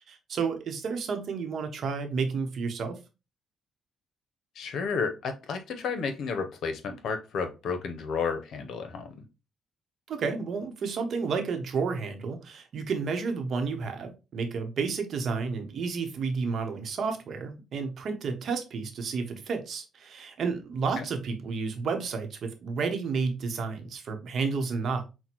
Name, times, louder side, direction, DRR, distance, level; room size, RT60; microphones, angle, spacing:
voice 1, 0.1-3.0 10.1-25.0, right 5 dB, 60° right, 6 dB, 0.8 m, -31 dB
voice 2, 4.6-9.2 21.0-21.1, left 5 dB, 70° left, 7 dB, 0.7 m, -32 dB
5.9 x 2.2 x 2.9 m, 0.28 s
cardioid pair, 90°, 0 cm